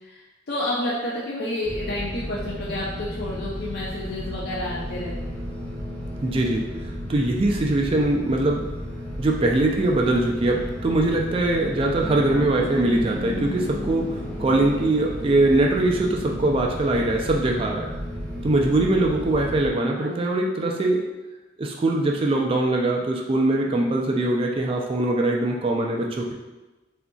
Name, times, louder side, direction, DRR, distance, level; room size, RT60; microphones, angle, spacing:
voice 1, 0.5-5.2 19.9-20.2, left 1 dB, 55° left, -6 dB, 0.5 m, -29 dB
sound 1, 1.6-19.7, equal, 5° left, 0.6 m, -34 dB
voice 2, 6.2-6.6 7.1-8.6 9.2-17.9 18.4-21.0 21.6-26.3, right 2 dB, 30° right, 0 dB, 0.3 m, -22 dB
sound 2, 11.4-16.9, left 1 dB, 50° right, 0.8 m, -36 dB
3.8 x 2.5 x 2.2 m, 1.1 s
head